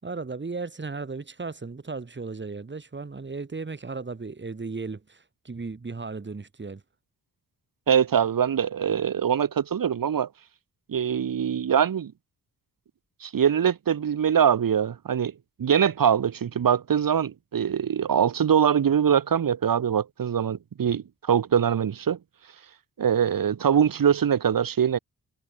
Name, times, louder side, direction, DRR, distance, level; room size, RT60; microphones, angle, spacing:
voice 1, 0.0-6.8, right 4 dB, 30° right, 6.0 m, -35 dB
voice 2, 7.9-10.3 10.9-12.1 13.2-15.3 15.6-22.2 23.0-25.0, right 8 dB, 70° right, 3.3 m, -23 dB
wide cardioid pair, 110°, 35 cm